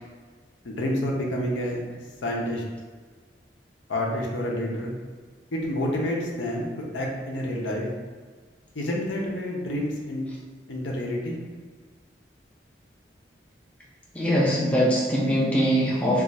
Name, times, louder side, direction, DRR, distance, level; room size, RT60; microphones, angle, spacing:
voice 1, 0.6-1.8 2.2-2.6 3.9-5.0 5.5-7.9 8.7-10.2 10.7-11.4, left 1 dB, 85° left, -2 dB, 0.7 m, -28 dB
voice 2, 14.1-16.2, equal, 5° left, -6 dB, 0.5 m, -22 dB
2.4 x 2.4 x 4.0 m, 1.5 s
head